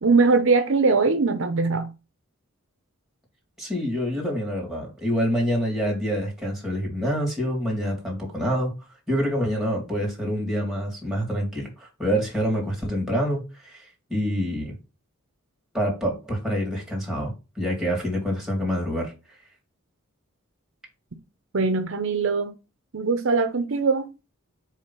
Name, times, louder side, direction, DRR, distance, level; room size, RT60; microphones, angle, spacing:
voice 1, 0.0-1.9 21.5-22.5 22.9-24.1, right 4 dB, 65° right, 0.7 m, -21 dB
voice 2, 3.6-8.7 9.1-14.7 15.7-19.1, equal, ahead, 2.7 m, -26 dB
4.9 x 3.8 x 5.6 m
head